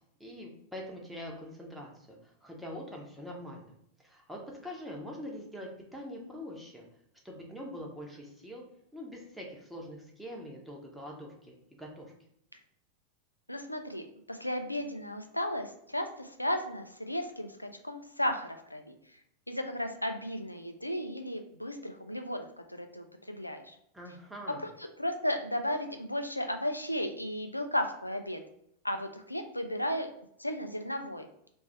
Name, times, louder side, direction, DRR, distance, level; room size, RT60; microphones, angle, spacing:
voice 1, 0.2-3.7 4.0-6.9 7.2-8.6 8.9-12.1 23.9-24.7, equal, 5° right, -2 dB, 1.0 m, -44 dB
voice 2, 13.5-18.9 19.5-23.8 24.5-28.4 28.8-30.1 30.4-31.3, left 1 dB, 85° left, 6 dB, 0.4 m, -34 dB
3.2 x 2.6 x 4.5 m, 0.72 s
figure-of-eight pair, 90°, 0 cm